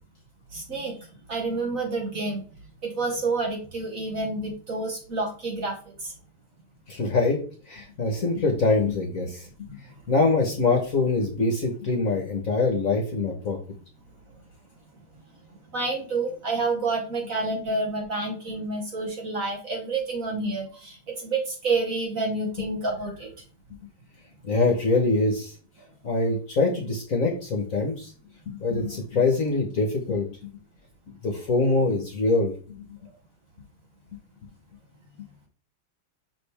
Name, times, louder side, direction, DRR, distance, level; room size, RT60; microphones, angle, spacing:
voice 1, 0.5-1.0 1.3-2.4 2.8-6.1 9.6-9.7 15.7-23.3, right 3 dB, 45° right, 0 dB, 1.6 m, -29 dB
voice 2, 6.9-7.4 7.7-9.5 10.1-13.6 24.4-25.5 26.0-28.1 28.5-30.2 31.2-32.9, left 3 dB, 45° left, 2 dB, 1.4 m, -24 dB
6.2 x 5.1 x 3.4 m, 0.39 s
omnidirectional pair, 2.3 m